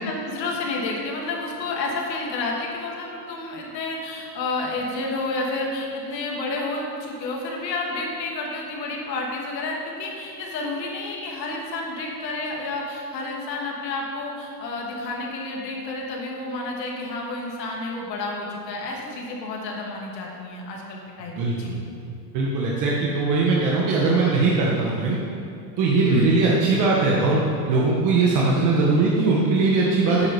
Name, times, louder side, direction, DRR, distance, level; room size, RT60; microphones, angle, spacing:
voice 1, 0.0-21.7 26.1-26.3, left 2 dB, 85° left, -1 dB, 2.9 m, -30 dB
voice 2, 21.3-21.8 22.3-25.2 25.8-27.4 27.7-30.3, right 3 dB, 40° right, -4 dB, 1.7 m, -20 dB
9.9 x 8.0 x 7.0 m, 2.6 s
supercardioid pair, 150°, 49 cm